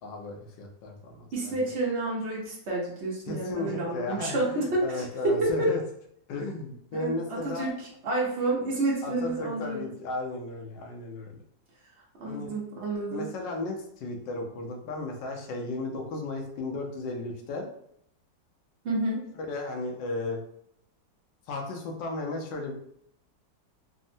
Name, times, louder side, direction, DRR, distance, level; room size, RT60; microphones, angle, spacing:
voice 1, 0.0-1.6 3.3-5.8 6.3-7.7 9.0-11.4 12.3-12.6 13.1-17.7 19.5-20.4 21.5-22.7, left 2 dB, 80° left, 1 dB, 1.3 m, -35 dB
voice 2, 1.3-5.7 6.9-7.7 8.0-9.9 12.2-13.3 18.8-19.2, right 2 dB, 55° right, -3 dB, 0.8 m, -29 dB
3.4 x 2.0 x 2.6 m, 0.70 s
omnidirectional pair, 2.0 m